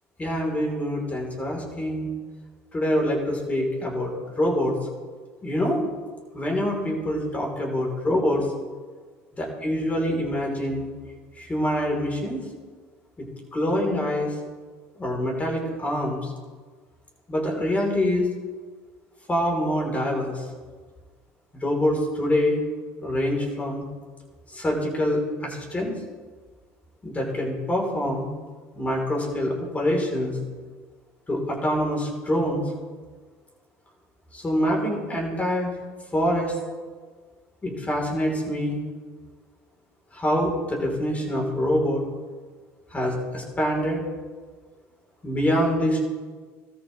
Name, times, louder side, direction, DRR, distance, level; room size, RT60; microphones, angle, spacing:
voice 1, 0.2-2.1 2.7-4.8 5.4-5.9 6.3-8.4 9.4-10.9 11.4-12.4 13.5-14.3 15.0-16.3 17.3-18.3 19.3-20.4 21.5-22.6 23.0-23.8 24.5-25.9 27.0-28.3 28.8-30.4 31.3-32.6 34.3-35.7 36.1-36.6 37.6-38.8 40.1-42.0 42.9-44.0 45.2-46.1, equal, 20° left, -1 dB, 5.8 m, -25 dB
19.5 x 13.5 x 4.0 m, 1.5 s
supercardioid pair, 85°, 7 cm